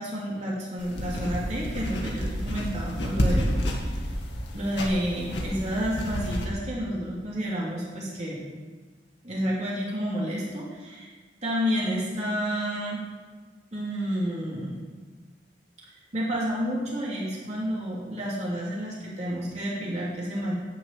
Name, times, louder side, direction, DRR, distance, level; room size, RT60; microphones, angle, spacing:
voice 1, 0.0-3.8 4.5-8.4 9.2-11.1 11.4-13.0 13.7-14.7 15.9-20.5, equal, 40° right, -6 dB, 3.1 m, -30 dB
sound 1, 0.8-6.5, equal, 80° left, 2.3 m, -30 dB
12.0 x 7.1 x 8.9 m, 1.4 s
head